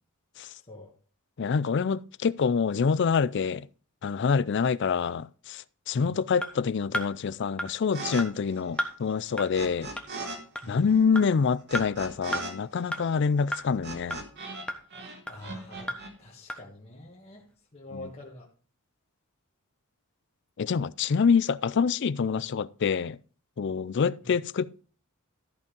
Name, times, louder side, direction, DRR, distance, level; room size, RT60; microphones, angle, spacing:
voice 1, 0.6-0.9 5.9-6.2 10.6-10.9 15.3-17.5 17.7-18.5 24.2-24.3, left 1 dB, 30° left, 1.8 m, -45 dB
voice 2, 1.4-3.7 4.0-9.9 10.7-14.2 17.9-18.0 20.6-23.2 23.6-24.8, left 5 dB, 55° left, 0.4 m, -26 dB
sound 1, 6.4-6.5 6.9-7.1 7.6-7.7 8.2-8.3 8.8-8.9 9.4-9.5 10.0-10.1 10.6-10.7 11.2-11.3 11.7-11.9 12.3-12.4 12.9-13.0 13.5-13.6 14.1-14.2 14.7-14.8 15.3-15.4 15.9-16.0 16.5-16.6, equal, 5° left, 1.3 m, -31 dB
sound 2, 7.9-8.2 8.5-10.4 10.6-14.7 14.9-16.1, right 3 dB, 55° right, 2.4 m, -39 dB
14.0 x 5.5 x 5.2 m
head